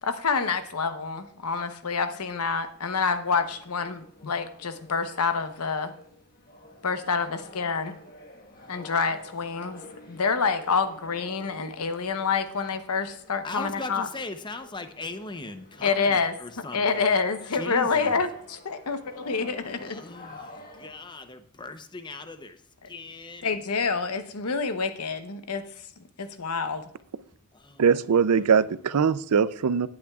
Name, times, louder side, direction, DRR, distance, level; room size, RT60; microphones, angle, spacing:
voice 1, 0.0-5.9 6.8-8.0 8.7-9.8 10.1-14.1 15.8-16.4 16.7-20.0 22.8-22.9 23.4-25.6 26.2-26.8, left 5 dB, 80° left, 0.9 m, -27 dB
sound 1, 2.0-20.9, left 2 dB, 40° left, 1.4 m, -50 dB
voice 2, 13.4-17.2 17.5-18.2 19.8-22.6 22.9-23.5 27.5-27.8, left 3 dB, 20° left, 0.7 m, -39 dB
voice 3, 27.8-29.9, right 6 dB, 85° right, 0.5 m, -21 dB
18.5 x 8.6 x 2.4 m
head